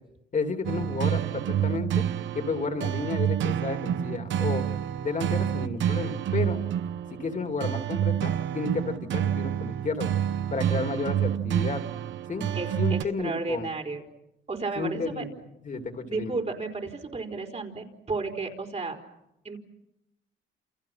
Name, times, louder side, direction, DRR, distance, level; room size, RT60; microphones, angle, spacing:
voice 1, 0.3-2.0 2.3-4.6 5.0-6.6 7.1-10.1 10.5-11.8 12.3-12.5 12.8-13.7 14.8-15.3 15.6-16.4, left 4 dB, 40° left, 5 dB, 3.1 m, -32 dB
sound 1, 0.6-13.0, right 10 dB, 70° right, 0.9 m, -28 dB
voice 2, 12.5-14.0 14.5-15.3 16.1-19.0 19.4-19.6, right 3 dB, 35° right, 4 dB, 4.5 m, -33 dB
29.5 x 28.5 x 5.9 m, 0.88 s
cardioid pair, 90°, 20 cm